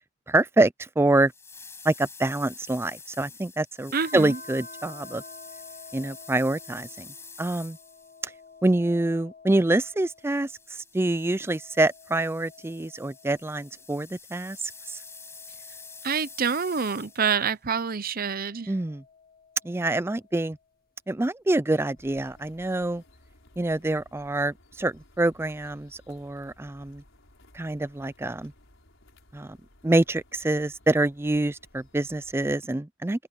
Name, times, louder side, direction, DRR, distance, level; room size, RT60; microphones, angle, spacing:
voice 1, 0.3-1.3 1.8-5.2 5.9-7.1 7.4-7.8 8.2-8.3 8.6-14.6 14.9-15.0 18.7-19.0 19.6-20.6 21.1-23.0 23.6-27.0 27.5-28.5 29.3-29.6 29.8-33.3, right 2 dB, 10° right, 0.4 m, -26 dB
sound 1, 1.3-8.3 10.2-17.4, left 4 dB, 10° left, 7.0 m, -47 dB
sound 2, 3.9-10.7 11.1-14.0 14.6-17.4 18.1-20.6 21.9-23.0, left 3 dB, 45° left, 2.0 m, -51 dB
voice 2, 3.9-4.4 16.0-18.7, right 6 dB, 45° right, 0.8 m, -27 dB
sound 3, 22.0-32.6, left 1 dB, 60° left, 5.6 m, -57 dB
head